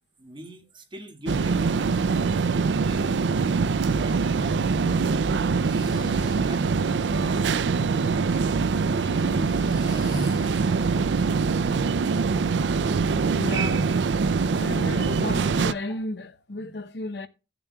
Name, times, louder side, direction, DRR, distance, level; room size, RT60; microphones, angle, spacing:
voice 1, 0.2-2.1 5.7-8.4 8.8-11.1, equal, 30° right, 1.8 m, -43 dB
sound 1, 1.3-15.7, right 4 dB, 85° right, 0.4 m, -23 dB
Breathing, 4.0-4.3 5.4-6.7 8.3-11.0, equal, 20° left, 2.4 m, -42 dB
sound 2, 10.4-16.1, equal, 5° right, 1.9 m, -52 dB
voice 2, 13.4-13.9 14.5-17.3, left 2 dB, 70° left, 0.8 m, -34 dB
17.0 x 6.9 x 2.3 m
head